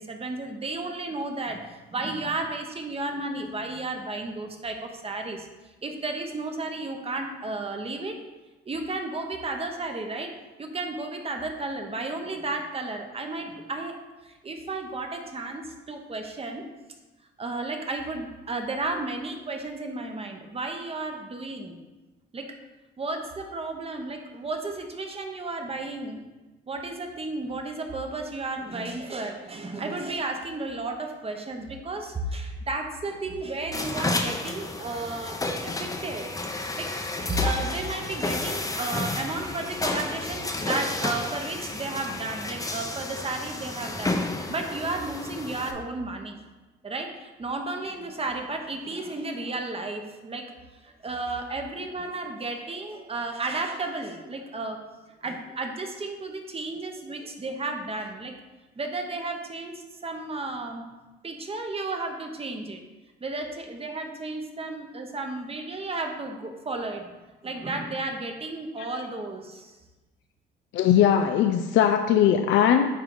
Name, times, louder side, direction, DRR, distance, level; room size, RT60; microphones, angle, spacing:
voice 1, 0.0-5.5 5.8-8.2 8.7-10.3 10.6-16.6 17.4-21.8 22.3-22.6 23.0-26.2 26.7-36.3 36.8-44.2 44.5-46.4 46.8-50.5 50.8-54.8 55.2-58.3 58.8-60.9 61.2-62.8 63.2-67.1 67.4-69.7, right 2 dB, 30° right, 4 dB, 0.9 m, -33 dB
sound 1, 33.7-45.7, left 2 dB, 15° left, 0.7 m, -31 dB
voice 2, 70.7-72.9, left 9 dB, 70° left, 6 dB, 0.4 m, -20 dB
9.4 x 3.4 x 3.9 m, 1.2 s
cardioid pair, 90°, 20 cm